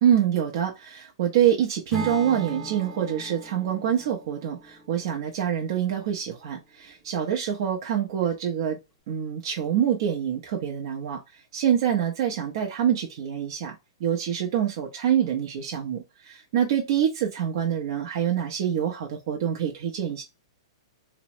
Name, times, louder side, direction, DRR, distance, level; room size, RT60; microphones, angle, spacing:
voice 1, 0.0-8.8 9.1-11.2 11.5-20.2, right 9 dB, 55° right, 0.7 m, -26 dB
Acoustic guitar / Strum, 1.9-6.1, right 2 dB, ahead, 0.9 m, -39 dB
2.9 x 2.1 x 2.8 m
hypercardioid pair, 140°, 3 cm